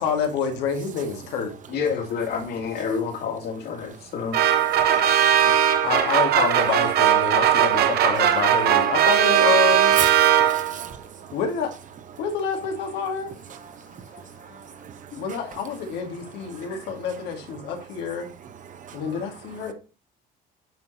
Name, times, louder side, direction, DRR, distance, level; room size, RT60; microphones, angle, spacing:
voice 1, 0.0-1.5 5.4-10.0 11.3-11.7 12.2-13.3 15.2-18.3 18.9-19.7, left 6 dB, 90° left, 2.1 m, -28 dB
voice 2, 1.7-4.4 15.1-15.2, left 6 dB, 65° left, 2.5 m, -28 dB
sound 1, 4.3-10.9, right 10 dB, 70° right, 1.1 m, -19 dB
voice 3, 10.0-11.3 13.7-15.1 16.5-16.6 18.7-19.0, right 8 dB, 50° right, 1.1 m, -36 dB
9.1 x 5.1 x 4.2 m
cardioid pair, 110°, 17 cm